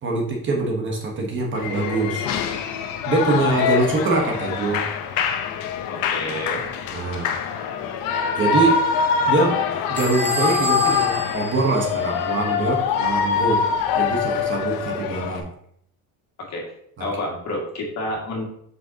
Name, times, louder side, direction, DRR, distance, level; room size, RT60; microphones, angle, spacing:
voice 1, 0.0-2.3 3.0-4.8 6.9-7.3 8.3-8.8 9.3-9.6 9.9-13.6 14.0-15.4 17.0-17.1, right 3 dB, 30° right, 0 dB, 1.2 m, -23 dB
Shout / Cheering, 1.5-15.4, left 6 dB, 65° left, 0.9 m, -24 dB
voice 2, 5.9-6.6 16.4-16.7 17.0-18.4, left 1 dB, 45° left, -2 dB, 2.1 m, -29 dB
Bell / Squeak, 10.0-12.5, right 3 dB, 5° left, 0.7 m, -31 dB
7.3 x 6.3 x 2.8 m, 0.70 s
cardioid pair, 175°, 37 cm